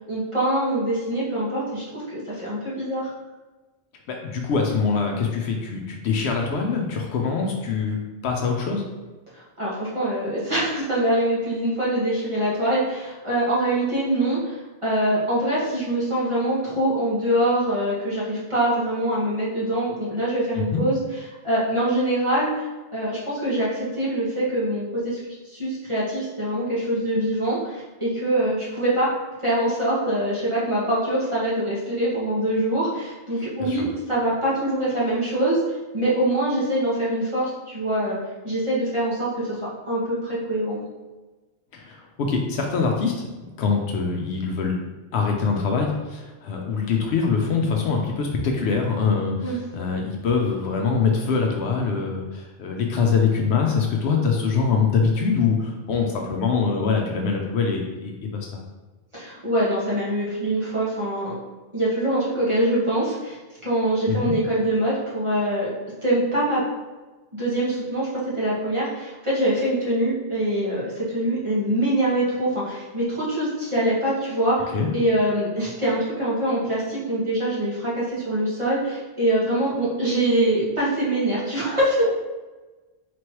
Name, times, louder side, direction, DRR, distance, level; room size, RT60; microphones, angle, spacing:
voice 1, 0.1-3.1 9.3-21.0 21.4-22.6 22.9-25.2 25.4-29.1 29.4-35.6 35.9-38.2 38.4-39.5 39.9-40.8 49.4-49.6 59.1-61.3 61.7-66.6 67.3-68.1 68.3-82.1, right 1 dB, 25° right, -8 dB, 1.3 m, -24 dB
voice 2, 4.1-8.8 20.5-20.8 33.6-33.8 41.7-43.1 43.6-44.8 45.1-58.6 64.1-64.4 74.7-74.9, left 5 dB, 70° left, 1 dB, 0.8 m, -24 dB
4.1 x 3.1 x 3.0 m, 1.2 s
omnidirectional pair, 1.2 m